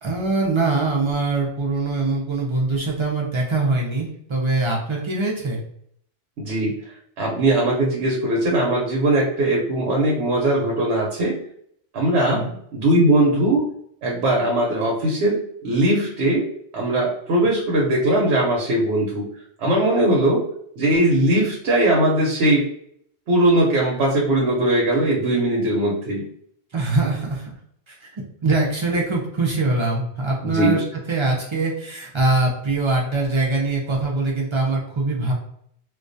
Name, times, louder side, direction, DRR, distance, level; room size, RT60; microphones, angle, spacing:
voice 1, 0.0-5.6 12.3-12.6 26.7-27.5 27.9-35.3, right 3 dB, 50° right, -2 dB, 0.3 m, -23 dB
voice 2, 6.4-6.8 7.2-11.4 11.9-13.8 14.0-19.3 19.6-20.5 20.8-22.7 23.3-26.3 30.4-30.8, right 1 dB, 90° right, -2 dB, 0.9 m, -20 dB
2.2 x 2.2 x 2.5 m, 0.67 s
omnidirectional pair, 1.1 m